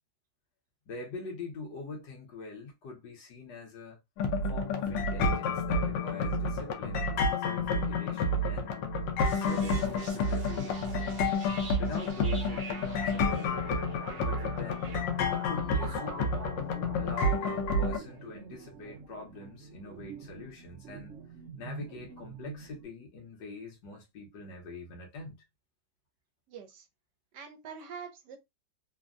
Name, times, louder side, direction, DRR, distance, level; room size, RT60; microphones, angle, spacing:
voice 1, 0.9-4.0 4.5-8.9 9.3-11.0 11.8-13.7 14.2-14.9 15.3-16.7 17.0-21.1 21.6-25.4, left 3 dB, 70° left, 1.6 m, -43 dB
sound 1, 4.2-18.0, left 2 dB, 85° left, 1.4 m, -30 dB
sound 2, 9.2-22.8, right 4 dB, 55° right, 0.9 m, -45 dB
voice 2, 26.5-26.8 27.3-28.4, right 6 dB, 75° right, 1.2 m, -44 dB
3.5 x 2.2 x 2.4 m
omnidirectional pair, 2.0 m